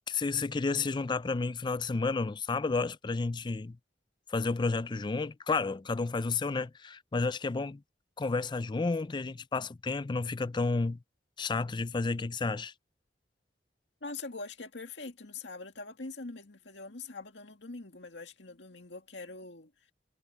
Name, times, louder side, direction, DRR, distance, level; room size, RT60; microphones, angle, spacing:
voice 1, 0.1-3.8 4.3-7.8 8.2-11.0 11.4-12.7, left 3 dB, 25° left, 0.4 m, -31 dB
voice 2, 14.0-19.9, left 3 dB, 75° left, 2.2 m, -43 dB
head